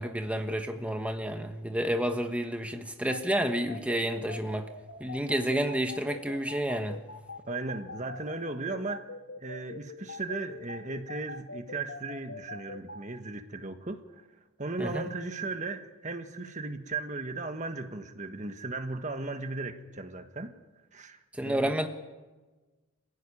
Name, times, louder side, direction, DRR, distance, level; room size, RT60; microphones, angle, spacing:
voice 1, 0.0-4.7 5.0-7.0 14.8-15.1 21.4-21.9, right 1 dB, 5° right, 5 dB, 1.3 m, -30 dB
sound 1, 3.1-13.0, left 3 dB, 85° left, 2.5 m, -42 dB
voice 2, 7.5-9.1 9.4-14.3 14.6-20.5 20.9-21.7, right 3 dB, 35° right, 7 dB, 1.4 m, -36 dB
27.5 x 16.0 x 9.9 m, 1.2 s
head